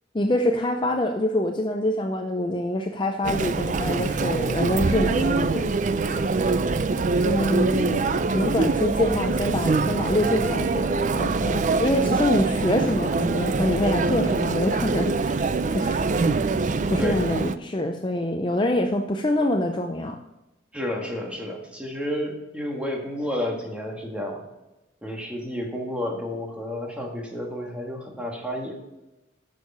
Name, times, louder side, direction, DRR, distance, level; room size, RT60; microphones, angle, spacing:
voice 1, 0.1-5.7 7.2-16.0 16.9-20.2, left 1 dB, 25° left, 5 dB, 0.5 m, -25 dB
Chatter, 3.2-17.6, right 3 dB, 40° right, 0.4 m, -24 dB
voice 2, 6.1-6.4 17.0-17.2 20.7-24.4 25.0-28.8, left 1 dB, 5° right, 0 dB, 1.6 m, -31 dB
9.3 x 6.5 x 5.4 m, 0.99 s
head